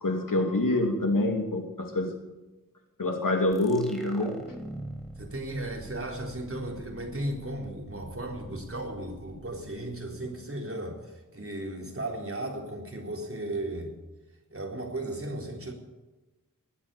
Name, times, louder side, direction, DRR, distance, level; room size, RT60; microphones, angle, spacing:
voice 1, 0.0-2.2 3.0-4.4, left 1 dB, 70° left, 3 dB, 2.9 m, -26 dB
sound 1, 3.5-10.8, right 1 dB, ahead, 3.1 m, -46 dB
voice 2, 5.2-13.9 14.5-15.7, right 1 dB, 40° right, 1 dB, 4.0 m, -35 dB
20.0 x 8.5 x 8.5 m, 1.1 s
wide cardioid pair, 55°, 33 cm